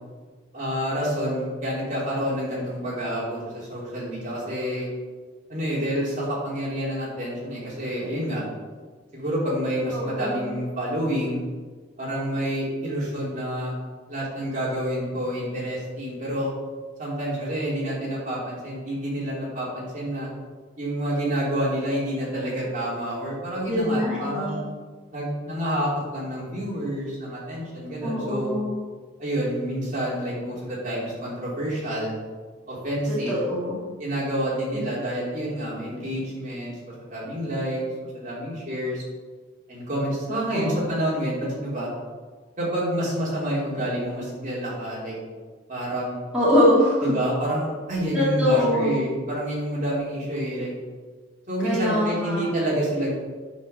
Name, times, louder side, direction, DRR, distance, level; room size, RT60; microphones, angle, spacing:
voice 1, 0.5-4.9 5.5-8.4 9.1-11.4 12.0-13.7 14.1-16.5 17.0-20.3 20.8-24.6 25.1-28.5 29.2-32.1 32.7-33.4 34.0-36.7 37.1-37.8 38.1-39.0 39.7-41.9 42.6-45.2 45.7-46.2 47.0-50.7 51.5-53.1, equal, 40° right, -6 dB, 3.3 m, -28 dB
voice 2, 9.9-10.5 23.7-24.6 28.0-28.7 33.1-33.8 40.3-40.8 46.3-47.1 48.1-49.0 51.6-52.5, left 1 dB, 5° right, -10 dB, 2.4 m, -23 dB
9.1 x 5.1 x 6.8 m, 1.4 s
head